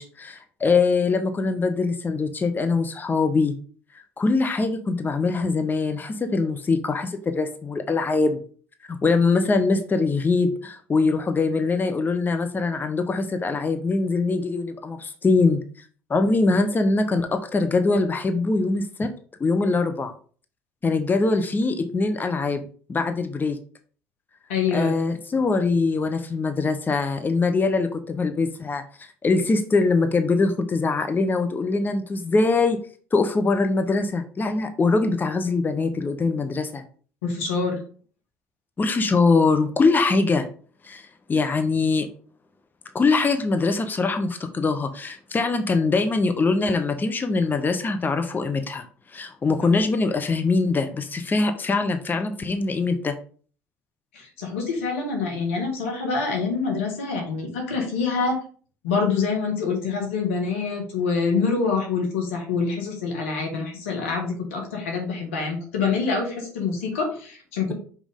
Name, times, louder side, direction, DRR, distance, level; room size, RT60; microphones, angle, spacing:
voice 1, 0.0-3.5 4.2-8.4 9.0-15.6 16.1-19.1 19.4-20.1 20.8-22.6 22.9-23.6 24.7-32.8 33.1-36.8 38.8-40.4 40.8-42.1 42.9-48.8 49.1-53.1, left 3 dB, 30° left, 7 dB, 0.9 m, -23 dB
voice 2, 24.5-24.9 37.2-37.8 54.1-58.4 58.8-67.7, left 4 dB, 85° left, 1 dB, 1.7 m, -26 dB
5.4 x 4.9 x 3.6 m, 0.43 s
hypercardioid pair, 65°, 7 cm